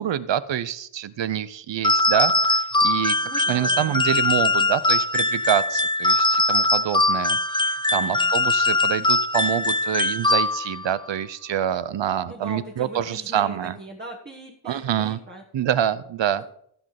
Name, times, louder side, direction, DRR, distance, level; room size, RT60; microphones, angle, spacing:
voice 1, 0.0-13.8 14.6-15.2 15.5-16.4, right 10 dB, 60° right, 16 dB, 0.8 m, -26 dB
sound 1, 1.8-10.9, left 2 dB, 10° left, 0.3 m, -21 dB
voice 2, 3.2-4.0 7.9-8.3 12.3-15.4, right 1 dB, 20° right, 0 dB, 1.5 m, -40 dB
15.5 x 5.4 x 5.9 m, 0.68 s
wide cardioid pair, 125°, 49 cm